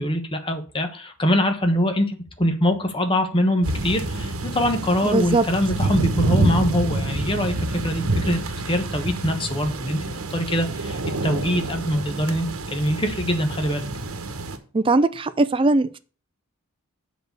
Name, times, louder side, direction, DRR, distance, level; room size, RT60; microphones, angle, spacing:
voice 1, 0.0-8.4 8.6-10.0 10.3-13.8, equal, 25° left, 1.1 m, -23 dB
sound 1, 3.6-14.6, right 2 dB, 85° right, 1.1 m, -27 dB
voice 2, 5.1-5.5 14.7-16.0, right 2 dB, 25° right, 0.4 m, -20 dB
7.6 x 4.1 x 6.7 m
head